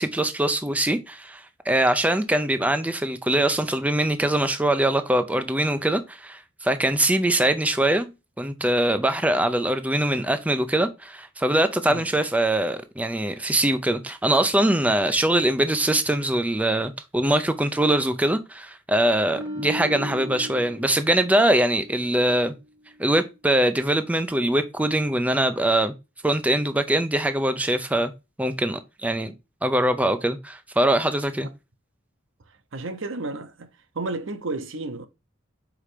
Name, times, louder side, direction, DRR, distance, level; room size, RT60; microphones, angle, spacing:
voice 1, 0.0-8.1 8.4-22.5 23.0-25.9 26.2-28.1 28.4-29.3 29.6-31.5, right 1 dB, 5° right, 0.5 m, -22 dB
sound 1, 19.3-22.6 22.9-23.1, equal, 60° right, 3.2 m, -37 dB
voice 2, 32.7-33.7 33.9-35.1, right 2 dB, 80° right, 0.9 m, -32 dB
5.0 x 4.3 x 5.0 m
head